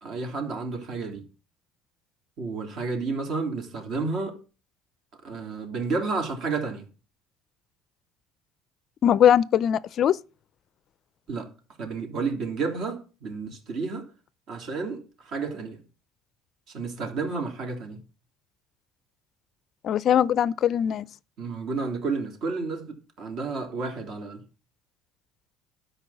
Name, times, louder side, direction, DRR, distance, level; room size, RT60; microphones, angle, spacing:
voice 1, 0.0-1.2 2.4-4.4 5.2-6.9 11.3-11.5 11.8-14.1 14.5-15.8 16.7-18.0 21.4-24.4, right 4 dB, 50° right, 3.3 m, -31 dB
voice 2, 9.0-10.2 19.8-21.1, left 10 dB, 40° left, 0.5 m, -21 dB
12.5 x 5.4 x 7.1 m
cardioid pair, 145°, 0 cm